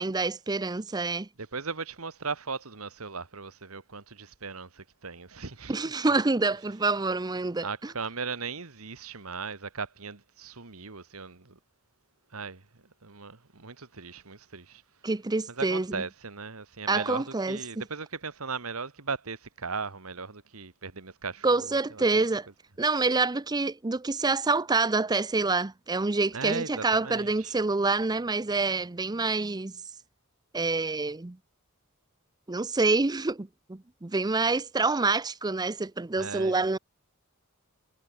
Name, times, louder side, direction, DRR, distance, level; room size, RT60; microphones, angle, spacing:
voice 1, 0.0-1.3 5.7-7.9 15.0-16.0 16.9-17.6 21.4-22.5 22.8-29.7 30.5-31.4 32.5-36.8, right 3 dB, 20° right, 0.6 m, -27 dB
voice 2, 1.4-6.2 7.6-11.6 12.3-12.6 13.0-14.8 15.5-22.3 26.3-27.5 36.2-36.8, right 4 dB, 75° right, 1.9 m, -38 dB
head